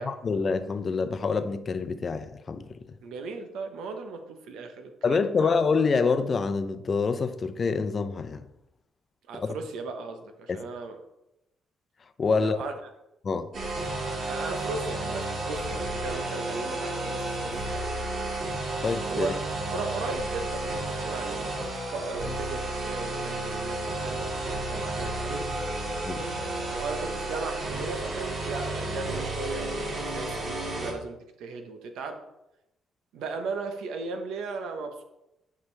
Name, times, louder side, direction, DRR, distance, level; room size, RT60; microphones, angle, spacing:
voice 1, 0.0-2.6 5.0-8.5 9.3-9.6 10.5-10.6 12.2-12.6 13.2-13.5 18.8-19.3 26.1-26.3, left 4 dB, 40° left, 0.6 m, -26 dB
voice 2, 3.0-5.5 9.3-11.0 12.4-12.7 14.3-17.9 19.1-19.4 19.7-21.6 21.9-25.5 26.6-32.2 33.1-35.0, right 4 dB, 85° right, 0.9 m, -37 dB
sound 1, 13.5-30.9, right 2 dB, 55° right, 2.8 m, -32 dB
9.7 x 5.0 x 3.3 m
cardioid pair, 90°, 0 cm